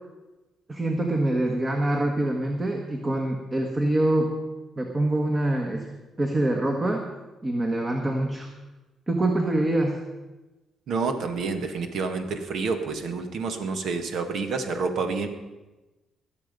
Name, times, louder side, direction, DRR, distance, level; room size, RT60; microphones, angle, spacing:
voice 1, 0.7-4.3 4.8-5.8 6.2-7.1 7.4-8.5 9.1-10.0, right 1 dB, 25° right, 2 dB, 1.6 m, -25 dB
voice 2, 10.9-15.3, right 4 dB, 70° right, 7 dB, 1.6 m, -28 dB
20.5 x 7.5 x 5.3 m, 1.1 s
cardioid pair, 90°, 0 cm